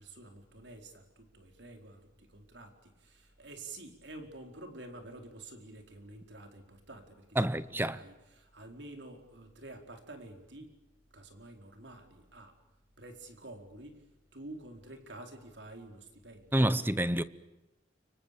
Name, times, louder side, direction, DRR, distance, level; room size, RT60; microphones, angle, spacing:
voice 1, 0.0-7.4 7.7-10.7 11.1-12.6 13.0-14.0 14.3-16.6, right 2 dB, 70° right, 4.7 m, -49 dB
voice 2, 7.4-8.0 16.5-17.2, right 1 dB, 10° right, 0.8 m, -28 dB
29.5 x 25.0 x 6.9 m
head